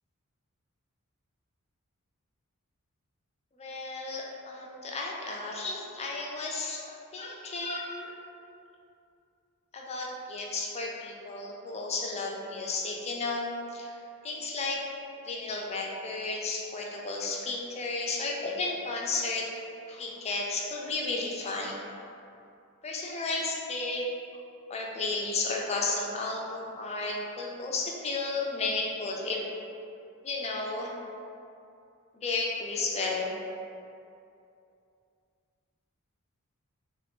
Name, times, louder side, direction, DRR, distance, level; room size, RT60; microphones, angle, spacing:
voice 1, 3.6-6.8 7.1-8.1 9.7-13.9 14.2-14.8 15.2-19.5 19.9-21.8 22.8-24.1 24.7-29.4 30.2-30.9 32.1-33.4, left 3 dB, 30° left, -1 dB, 0.4 m, -33 dB
3.2 x 2.6 x 3.4 m, 2.6 s
head